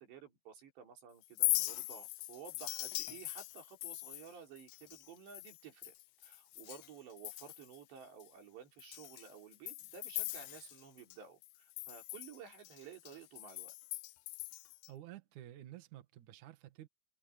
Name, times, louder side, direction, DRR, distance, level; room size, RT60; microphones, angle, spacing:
voice 1, 0.0-5.9 6.2-13.7, right 7 dB, 85° right, 6.4 m, -54 dB
Chink clink, 1.2-6.9 7.2-7.8 8.2-8.3 8.8-11.2 11.4-14.9, left 19 dB, 80° left, 2.1 m, -40 dB
voice 2, 14.9-16.9, right 13 dB, 55° right, 2.6 m, -51 dB
omnidirectional pair, 4.8 m